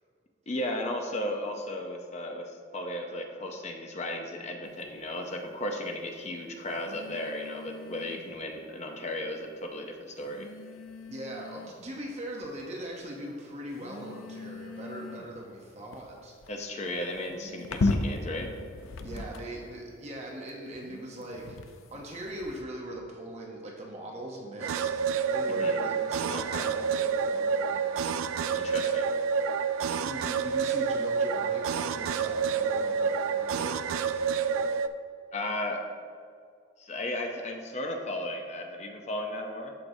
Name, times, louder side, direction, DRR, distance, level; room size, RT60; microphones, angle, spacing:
voice 1, 0.5-10.5 16.5-18.5 25.5-25.8 26.3-26.7 28.5-29.1 35.3-35.9 36.8-39.8, left 1 dB, 35° left, 3 dB, 0.6 m, -35 dB
sound 1, 4.6-4.9 6.7-8.4 9.4-9.5 10.2-11.9 12.4-12.9 13.7-19.7 20.5-22.6, left 2 dB, 85° left, 0.5 m, -37 dB
voice 2, 11.1-16.3 19.0-28.7 30.0-34.1, right 1 dB, 35° right, -2 dB, 0.8 m, -41 dB
sound 2, 24.6-34.9, right 6 dB, 85° right, 0.3 m, -28 dB
13.5 x 4.6 x 2.7 m, 2.2 s
head